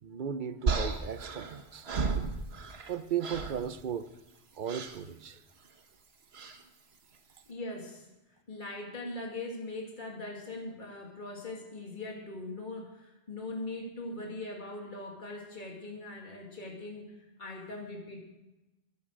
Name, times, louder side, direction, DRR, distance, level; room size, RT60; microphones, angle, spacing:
voice 1, 0.0-1.9 2.9-4.1 4.6-5.4, right 8 dB, 50° right, 0.8 m, -36 dB
sound 1, 0.7-2.9 3.2-3.6 4.7-5.0 6.3-6.6, right 4 dB, 70° right, 1.4 m, -33 dB
voice 2, 7.5-8.1 8.5-17.1 17.4-18.2, left 2 dB, 45° left, 2.5 m, -41 dB
13.0 x 10.0 x 6.4 m
omnidirectional pair, 1.1 m